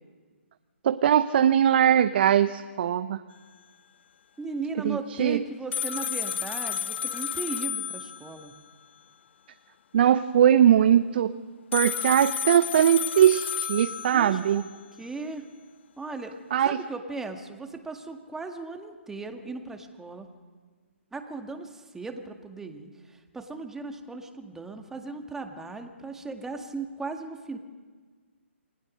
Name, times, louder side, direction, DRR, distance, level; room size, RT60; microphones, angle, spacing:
voice 1, 0.8-3.2 4.8-5.4 9.9-11.4 11.7-14.6 16.5-16.8, right 9 dB, 50° right, 11 dB, 0.8 m, -21 dB
voice 2, 4.4-8.5 14.1-14.6 15.0-15.5 16.0-16.4 16.6-20.3 21.1-27.6, right 3 dB, 5° right, 4 dB, 1.9 m, -37 dB
sound 1, 5.7-8.6 11.7-14.7, left 8 dB, 55° left, 0.6 m, -32 dB
29.0 x 20.5 x 6.4 m, 1.5 s
figure-of-eight pair, 140°, 7 cm